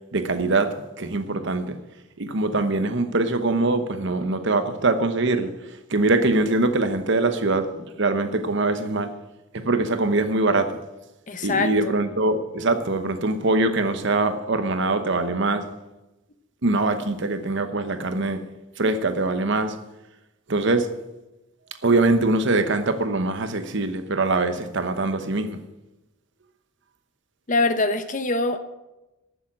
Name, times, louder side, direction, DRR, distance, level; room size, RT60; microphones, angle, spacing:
voice 1, 0.1-1.8 2.2-7.7 8.0-9.1 9.5-10.8 11.4-15.6 16.6-18.4 18.8-19.7 20.5-20.9 21.8-25.6, right 2 dB, 60° right, 1.0 m, -23 dB
voice 2, 11.3-11.9 27.5-28.6, left 3 dB, 40° left, 0.9 m, -23 dB
11.0 x 7.1 x 8.8 m
head